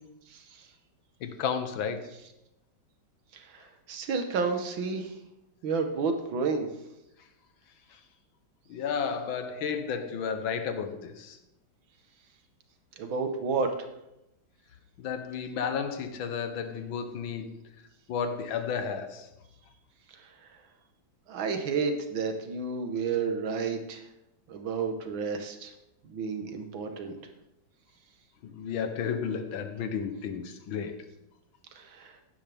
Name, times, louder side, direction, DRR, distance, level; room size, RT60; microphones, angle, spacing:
voice 1, 0.3-0.7 3.3-5.1 5.6-6.7 13.0-13.7 20.1-20.3 21.3-24.0 24.5-25.7 26.0-27.2 31.7-32.2, right 5 dB, 80° right, 6 dB, 2.1 m, -31 dB
voice 2, 1.2-2.0 8.7-11.4 15.0-17.5 18.1-19.3 28.5-30.9, left 6 dB, 80° left, 8 dB, 1.8 m, -32 dB
15.5 x 11.0 x 3.5 m, 0.87 s
omnidirectional pair, 2.1 m